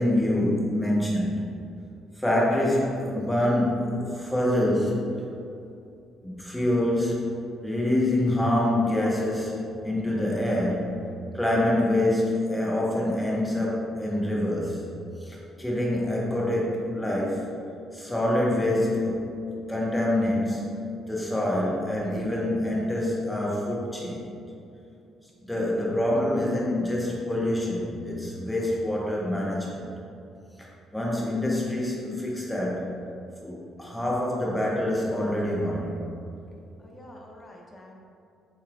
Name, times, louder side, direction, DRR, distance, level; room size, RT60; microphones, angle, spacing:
voice 1, 0.0-1.4 2.2-5.1 6.2-7.3 7.6-10.9 11.3-14.8 15.2-17.5 17.9-19.4 19.7-20.7 21.1-24.2 25.5-29.9 30.6-30.7 30.9-32.8 33.4-35.9, left 1 dB, 5° left, -5 dB, 1.1 m, -26 dB
voice 2, 35.4-36.3 36.8-38.0, left 1 dB, 25° left, -1 dB, 0.8 m, -43 dB
5.7 x 3.2 x 2.5 m, 2.6 s
figure-of-eight pair, 45°, 0 cm